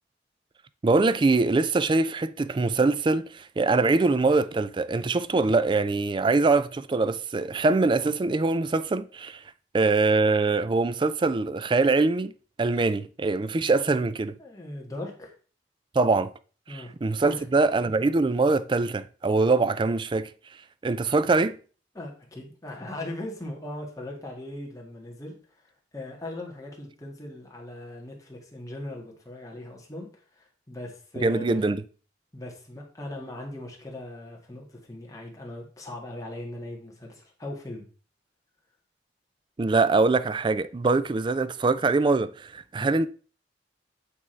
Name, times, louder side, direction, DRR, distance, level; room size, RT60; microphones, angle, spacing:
voice 1, 0.8-9.4 9.7-12.3 12.6-14.4 15.9-16.3 16.7-20.3 20.8-21.6 31.2-31.8 39.6-43.1, right 3 dB, 25° right, 0.3 m, -23 dB
voice 2, 14.4-15.3 16.7-16.9 17.2-17.4 21.9-25.3 25.9-30.1 30.3-31.7 32.3-37.8 42.8-42.9, left 1 dB, 20° left, 1.8 m, -39 dB
8.6 x 3.6 x 4.4 m
head